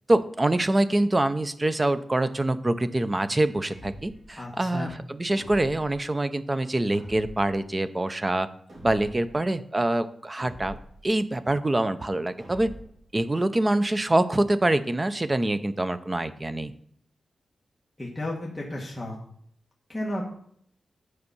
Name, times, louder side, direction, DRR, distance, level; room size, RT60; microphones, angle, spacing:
voice 1, 0.1-8.5 8.8-10.8 11.0-12.7 13.1-16.7, right 1 dB, 20° right, 12 dB, 0.4 m, -25 dB
sound 1, 3.6-4.3 5.3-6.0 6.9-7.6 8.7-9.3 10.4-11.1 12.4-13.0, equal, 45° right, 3.2 m, -44 dB
voice 2, 4.4-4.9 18.0-19.1 19.9-20.3, left 1 dB, 10° left, -4 dB, 1.2 m, -33 dB
9.6 x 4.7 x 5.4 m, 0.65 s
wide cardioid pair, 165°, 0 cm